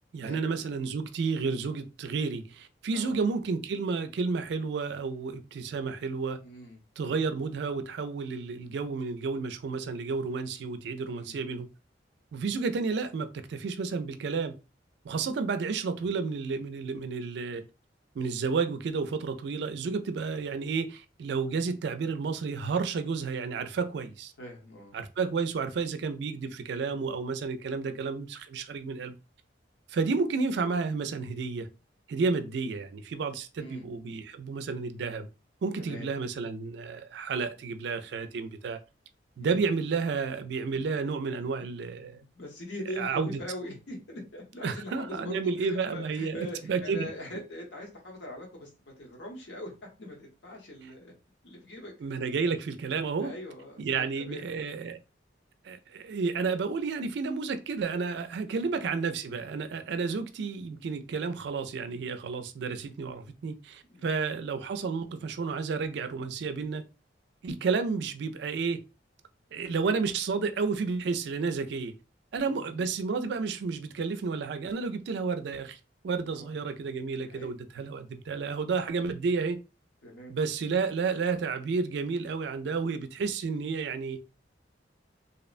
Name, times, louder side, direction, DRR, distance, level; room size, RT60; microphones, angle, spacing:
voice 1, 0.1-6.4 7.0-11.7 12.3-14.6 15.0-17.7 18.2-24.3 24.9-29.2 29.9-31.7 32.1-35.3 35.6-38.8 39.4-42.2 43.0-43.3 44.6-46.4 46.7-47.1 52.0-53.3 53.8-55.0 55.6-66.8 67.4-68.8 69.5-72.0 72.3-75.8 76.0-79.6 80.3-84.2, right 4 dB, 65° right, 0.3 m, -31 dB
voice 2, 6.4-6.8 11.0-11.4 24.4-25.0 27.8-28.0 33.6-33.9 35.8-36.1 39.4-39.6 41.9-48.7 49.0-49.7 50.0-51.1 51.4-51.9 53.2-54.4 58.4-58.7 60.1-60.2 63.9-64.1 72.4-72.9 76.3-76.6 77.2-77.5 80.0-80.4, left 1 dB, 70° left, 1.0 m, -42 dB
2.8 x 2.1 x 2.4 m
head